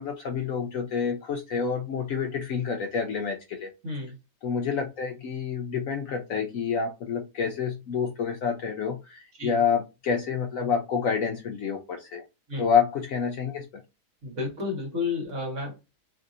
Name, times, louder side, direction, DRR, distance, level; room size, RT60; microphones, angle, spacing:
voice 1, 0.0-3.7 4.4-12.2 12.6-13.7, left 6 dB, 70° left, 4 dB, 0.8 m, -28 dB
voice 2, 3.8-4.1 9.4-9.6 12.5-12.7 14.2-15.9, left 4 dB, 50° right, 1 dB, 1.5 m, -31 dB
3.2 x 2.7 x 2.5 m, 0.25 s
omnidirectional pair, 1.8 m